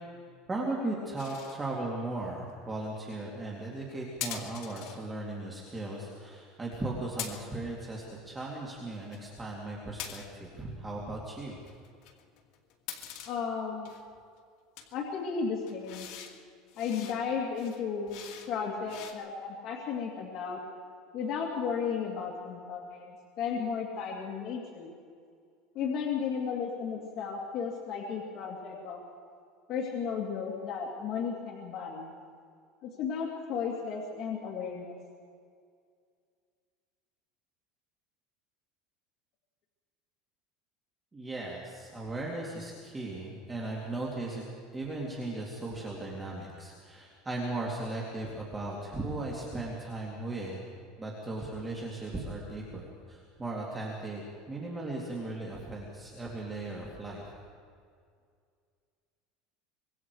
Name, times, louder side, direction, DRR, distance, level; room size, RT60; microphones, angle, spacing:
voice 1, 0.5-11.6 41.1-44.4 44.7-50.6 51.0-57.3, right 2 dB, 15° right, -3 dB, 2.6 m, -37 dB
sound 1, 1.2-1.6 4.2-5.0 7.2-7.7 8.9-9.2 10.0-10.5 11.6-13.4 13.9-14.2 14.8-14.9 15.7-16.4 16.7-17.2 17.6-18.5 18.9-19.1, left 9 dB, 55° left, 2.2 m, -42 dB
voice 2, 13.3-14.0 14.9-16.1 16.8-20.6 21.1-24.9 25.7-29.0 29.7-32.1 33.0-35.0, left 6 dB, 40° left, -2 dB, 2.5 m, -34 dB
25.0 x 22.0 x 4.8 m, 2.2 s
cardioid pair, 160°, 0 cm